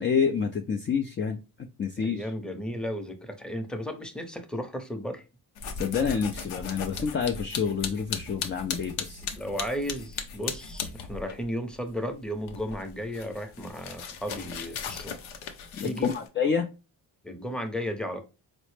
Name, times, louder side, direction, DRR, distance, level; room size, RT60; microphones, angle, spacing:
voice 1, 0.0-1.4 1.8-2.2 5.8-9.2 15.8-16.7, left 6 dB, 25° left, 0.4 m, -28 dB
voice 2, 2.0-5.2 9.2-15.1 15.8-16.1 17.2-18.2, equal, ahead, 0.7 m, -34 dB
sound 1, 5.6-11.4 11.7-16.3, left 6 dB, 80° left, 0.7 m, -37 dB
4.1 x 2.0 x 3.2 m
supercardioid pair, 55°, 49 cm